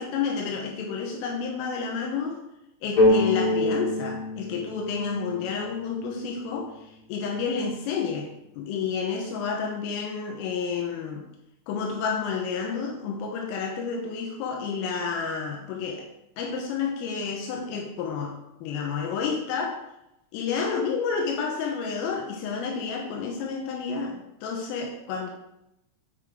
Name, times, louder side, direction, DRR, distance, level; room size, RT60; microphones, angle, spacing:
voice 1, 0.0-2.4 2.8-8.3 8.6-11.3 11.7-16.1 16.4-19.8 20.3-25.3, left 5 dB, 85° left, 0 dB, 3.5 m, -30 dB
sound 1, 3.0-6.6, left 1 dB, 50° left, 3.8 m, -25 dB
8.0 x 5.1 x 3.6 m, 0.86 s
omnidirectional pair, 5.9 m